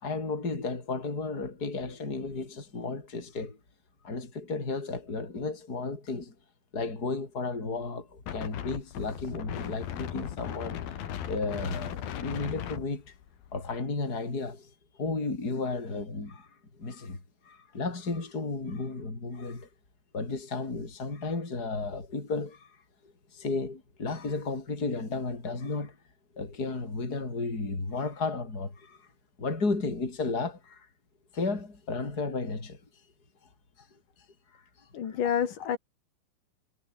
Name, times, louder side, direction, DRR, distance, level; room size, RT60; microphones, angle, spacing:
voice 1, 0.0-3.6 4.0-6.3 6.7-10.8 11.2-13.1 13.5-14.7 15.0-16.5 16.8-17.2 17.5-19.7 20.1-22.7 23.3-26.0 26.3-29.0 29.4-30.9 31.3-32.8, left 3 dB, 25° left, 5.5 m, -33 dB
Wind, 8.3-13.8, left 10 dB, 85° left, 4.0 m, -38 dB
voice 2, 34.9-35.8, left 8 dB, 65° left, 4.0 m, -28 dB
omnidirectional pair, 4.1 m